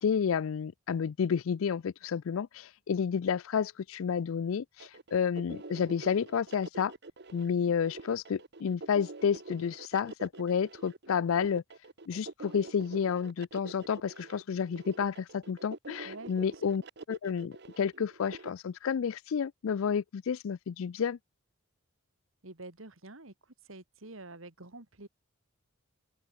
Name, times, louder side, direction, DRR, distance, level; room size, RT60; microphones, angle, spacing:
voice 1, 0.0-6.9 7.3-11.6 12.1-16.8 17.1-21.2, left 7 dB, 70° left, 0.4 m, -30 dB
sound 1, 4.8-18.5, right 3 dB, 55° right, 1.3 m, -46 dB
voice 2, 16.0-16.6 22.4-23.3 23.6-25.1, right 2 dB, 70° right, 2.7 m, -48 dB
open air
head